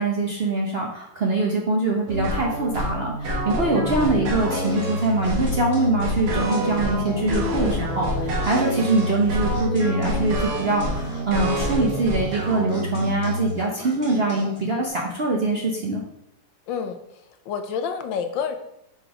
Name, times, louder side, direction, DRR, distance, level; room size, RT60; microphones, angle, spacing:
voice 1, 0.0-16.0, right 2 dB, 50° right, -1 dB, 0.7 m, -23 dB
sound 1, 2.1-13.5, equal, 85° right, 1.9 m, -27 dB
sound 2, 4.5-14.9, right 2 dB, 10° left, 2.2 m, -37 dB
voice 2, 16.7-17.0 17.5-18.6, left 6 dB, 80° left, 7 dB, 1.4 m, -28 dB
5.6 x 4.1 x 4.9 m, 0.79 s
omnidirectional pair, 2.0 m